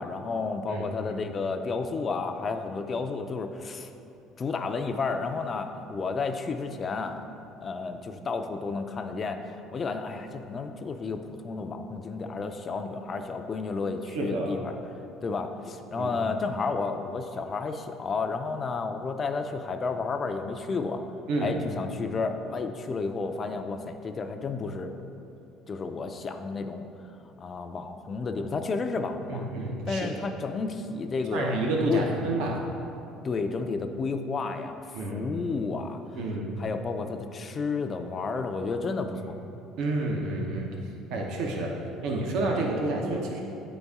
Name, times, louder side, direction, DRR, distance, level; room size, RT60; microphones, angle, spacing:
voice 1, 0.0-3.9 4.4-7.2 7.6-14.8 15.2-21.0 21.4-24.9 25.7-26.9 27.4-29.5 29.9-31.6 31.9-32.0 33.2-36.0 36.6-39.4, left 4 dB, 30° left, 6 dB, 0.3 m, -31 dB
voice 2, 14.1-14.5 16.0-16.1 21.3-21.6 29.3-30.3 31.3-32.7 34.9-35.3 36.2-36.6 39.8-40.7 41.1-43.4, right 2 dB, 70° right, 0 dB, 0.8 m, -29 dB
8.6 x 4.0 x 3.5 m, 2.7 s
cardioid pair, 130°, 0 cm